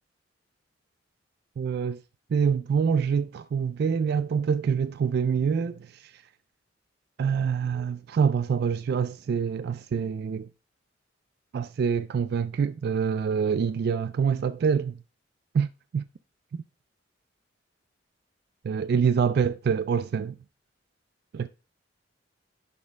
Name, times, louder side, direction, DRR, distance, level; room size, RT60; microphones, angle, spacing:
voice 1, 1.6-2.0 2.3-6.2 7.2-10.5 11.5-15.0 15.5-16.0 18.6-20.4 21.3-21.5, right 6 dB, 60° right, 0.3 m, -26 dB
10.5 x 4.3 x 3.4 m
head